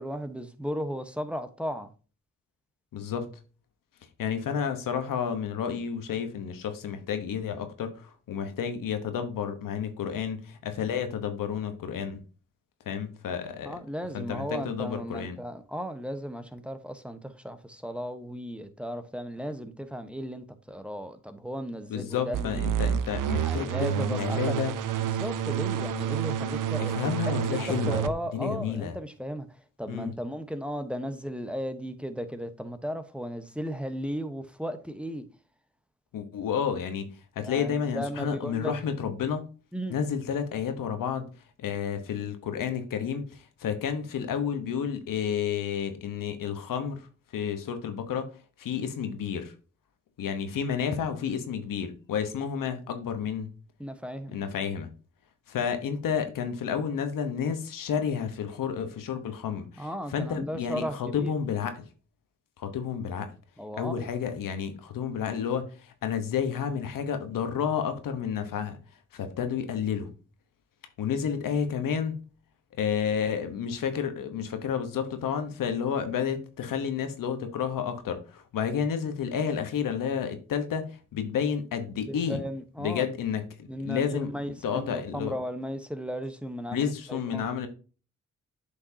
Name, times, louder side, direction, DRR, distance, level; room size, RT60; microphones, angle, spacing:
voice 1, 0.0-1.9 4.5-4.6 13.6-22.6 23.4-24.6 25.0-29.5 29.8-35.2 37.4-38.7 39.7-40.0 53.8-54.4 59.8-61.3 63.6-64.1 82.1-83.1 83.7-87.5, equal, 5° right, 1.0 m, -35 dB
voice 2, 2.9-3.4 4.2-12.2 12.9-13.7 14.1-15.4 21.9-24.7 26.8-28.0 28.3-28.9 29.9-30.1 36.1-37.1 37.4-39.5 39.9-41.3 41.6-48.3 48.6-49.5 50.2-53.5 54.3-54.9 55.5-61.9 62.6-63.3 63.8-68.8 69.1-70.1 71.0-72.2 72.8-82.4 82.8-84.3 84.6-85.3 86.7-87.7, left 7 dB, 90° left, 1.0 m, -31 dB
sound 1, 22.3-28.1, right 9 dB, 75° right, 0.6 m, -29 dB
8.2 x 5.3 x 2.7 m
cardioid pair, 50°, 32 cm